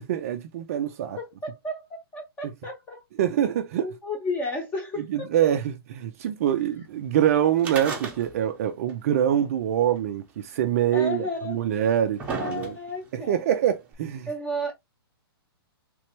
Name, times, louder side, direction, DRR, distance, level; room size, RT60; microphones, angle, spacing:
voice 1, 0.0-1.2 3.2-3.9 5.1-12.8 13.1-14.3, right 10 dB, 35° right, 0.5 m, -25 dB
voice 2, 1.2-1.9 2.1-3.0 3.8-5.3 10.9-11.7 12.3-13.4 14.3-14.7, left 1 dB, 15° left, 1.0 m, -32 dB
sound 1, 7.6-8.6 8.9-9.0 10.0-10.1 11.0-11.1 11.7-13.1 13.9-14.0, right 4 dB, 10° right, 0.9 m, -34 dB
3.4 x 3.2 x 3.0 m
hypercardioid pair, 165°, 13 cm